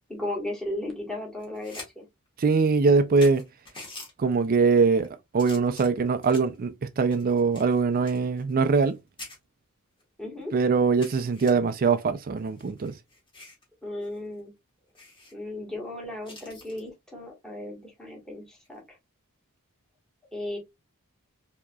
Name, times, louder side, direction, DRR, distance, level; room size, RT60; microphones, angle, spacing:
voice 1, 0.1-2.0 10.2-10.5 13.8-14.5 15.3-18.8 20.3-20.6, left 1 dB, 5° left, 1.5 m, -35 dB
sound 1, 1.4-1.9 2.3-2.4 2.9-3.0 3.2-4.1 4.8-5.1 5.4-6.6 7.1-8.9 9.2-9.4 10.0-10.1 10.4-10.5 11.0-11.5 12.4-13.6 14.0-14.2 14.5-14.6 14.9-15.3 16.2-16.8 18.5-18.8, left 2 dB, 25° left, 1.7 m, -45 dB
voice 2, 2.4-3.4 4.2-9.0 10.5-12.9, right 4 dB, 40° right, 0.4 m, -22 dB
4.6 x 2.9 x 2.3 m
head